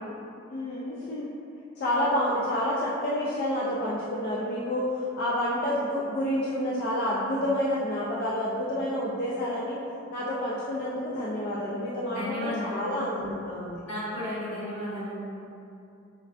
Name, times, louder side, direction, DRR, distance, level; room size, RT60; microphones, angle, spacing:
voice 1, 0.5-1.3 1.8-9.8 10.1-13.8, left 1 dB, 55° left, -7 dB, 0.4 m, -29 dB
voice 2, 12.0-13.0 13.9-15.3, left 1 dB, 85° left, -10 dB, 1.5 m, -34 dB
4.3 x 2.4 x 2.2 m, 2.6 s
head